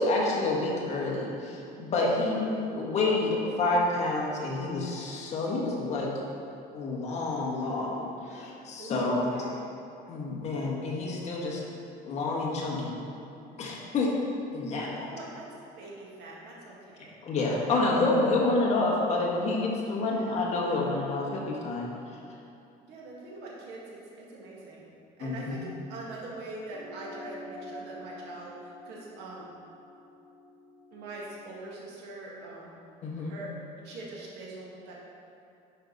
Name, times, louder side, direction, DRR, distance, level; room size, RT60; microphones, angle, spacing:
voice 1, 0.0-6.1 6.7-9.3 10.1-11.6 12.0-13.0 13.6-14.1 14.5-14.9 17.2-21.9 25.2-25.6 33.0-33.3, left 2 dB, 40° left, -3 dB, 1.5 m, -28 dB
voice 2, 2.3-2.7 8.8-9.6 14.8-15.4 15.8-17.1 20.0-20.5 22.8-24.0 24.3-24.9 25.2-29.5 30.9-32.7 33.2-33.5 33.8-34.9, right 2 dB, 70° right, -4 dB, 2.0 m, -43 dB
sound 1, 26.7-31.5, left 1 dB, 25° right, 1.9 m, -47 dB
10.0 x 5.7 x 4.0 m, 2.7 s
cardioid pair, 160°, 18 cm